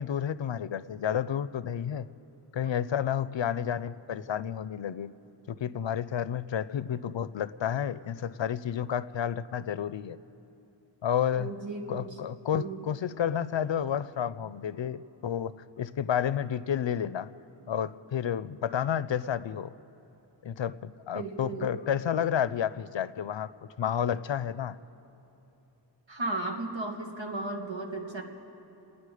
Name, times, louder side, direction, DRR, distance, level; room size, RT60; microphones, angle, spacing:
voice 1, 0.0-2.1 2.5-5.1 5.5-10.2 11.0-11.5 11.9-17.3 17.7-19.7 20.4-24.8, left 9 dB, 85° left, 16 dB, 0.5 m, -31 dB
voice 2, 11.4-12.1 12.5-12.8 21.1-21.8 26.1-28.2, right 2 dB, 85° right, 2 dB, 1.6 m, -35 dB
29.5 x 9.9 x 4.9 m, 3.0 s
wide cardioid pair, 45°, 44 cm